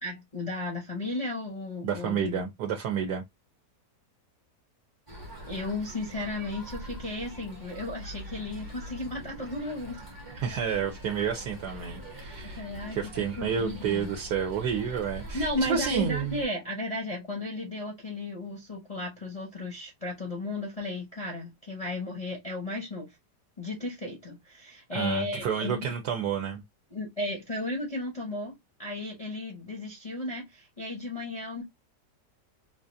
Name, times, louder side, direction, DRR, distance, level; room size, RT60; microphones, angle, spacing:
voice 1, 0.0-2.5 5.5-10.0 12.4-13.0 13.4-14.1 15.3-23.1 23.6-25.9 26.9-31.6, left 1 dB, 30° left, 0.7 m, -34 dB
voice 2, 1.8-3.2 10.3-16.4 24.9-26.6, right 7 dB, 75° right, 1.2 m, -30 dB
sound 1, 5.1-16.4, equal, 20° right, 0.7 m, -43 dB
3.9 x 2.4 x 2.6 m
omnidirectional pair, 1.8 m